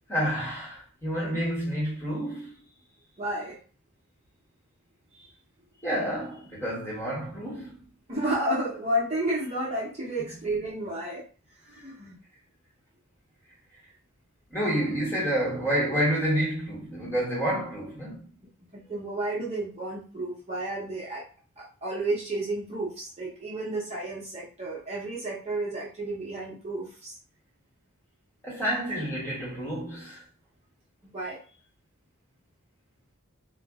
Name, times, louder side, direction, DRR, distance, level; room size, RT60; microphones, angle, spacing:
voice 1, 0.1-2.5 5.8-7.8 14.5-18.3 28.4-30.2, equal, 10° left, 1.2 m, -29 dB
voice 2, 1.2-1.5 3.2-3.6 5.2-5.3 8.1-11.3 11.7-12.2 18.7-21.2 21.6-27.2 31.0-31.4, right 1 dB, 30° right, 0.8 m, -32 dB
2.4 x 2.1 x 3.5 m
head